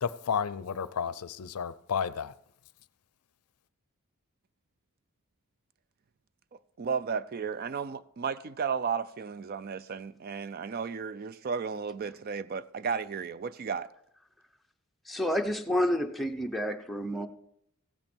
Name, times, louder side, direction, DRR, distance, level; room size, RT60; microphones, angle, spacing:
voice 1, 0.0-2.3, left 7 dB, 85° left, 0.5 m, -32 dB
voice 2, 6.8-13.9, right 6 dB, 40° right, 0.3 m, -34 dB
voice 3, 15.1-17.3, equal, ahead, 0.7 m, -29 dB
15.5 x 8.8 x 4.4 m
head